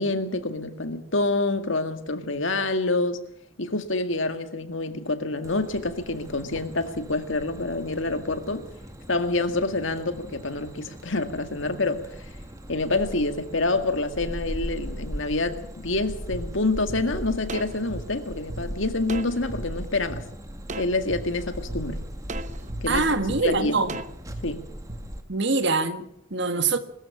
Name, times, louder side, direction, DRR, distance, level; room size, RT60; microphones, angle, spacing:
voice 1, 0.0-3.2 3.6-8.7 9.1-12.0 12.7-20.2 20.8-22.0 22.8-23.8 24.4-24.7, left 2 dB, 70° left, 2.0 m, -27 dB
sound 1, 5.4-25.2, equal, 15° right, 1.6 m, -39 dB
sound 2, 16.3-16.4 16.9-17.0 17.5-18.6 19.1-19.6 20.1-20.2 20.7-21.2 21.7-21.8 22.3-22.8 23.3-23.4 23.9-24.4 24.9-25.0, right 2 dB, 35° right, 1.0 m, -36 dB
voice 2, 22.9-24.0 25.3-26.8, right 3 dB, 60° right, 1.7 m, -24 dB
21.5 x 14.0 x 8.7 m
head